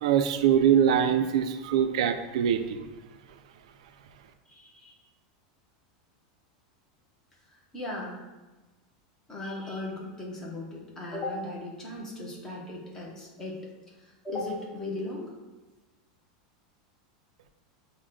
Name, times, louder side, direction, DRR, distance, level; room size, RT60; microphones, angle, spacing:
voice 1, 0.0-2.9, right 9 dB, 70° right, 8 dB, 0.4 m, -23 dB
voice 2, 4.5-5.0 7.7-8.2 9.3-13.7 14.0-15.3, left 2 dB, 15° left, -2 dB, 0.7 m, -37 dB
6.0 x 2.1 x 3.7 m, 1.2 s
supercardioid pair, 175°, 4 cm